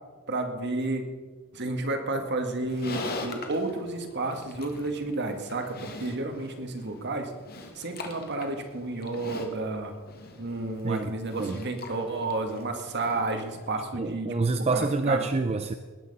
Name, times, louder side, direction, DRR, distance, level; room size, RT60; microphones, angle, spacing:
voice 1, 0.3-1.1 1.5-7.3 7.8-9.9 10.4-14.3 14.6-15.2, right 2 dB, 55° right, 5 dB, 1.8 m, -31 dB
Livestock farm animals working animals, 2.5-13.8, left 2 dB, 45° left, 1.8 m, -42 dB
voice 2, 13.9-15.7, right 3 dB, 30° right, 8 dB, 0.5 m, -27 dB
19.5 x 9.2 x 5.5 m, 1.4 s
head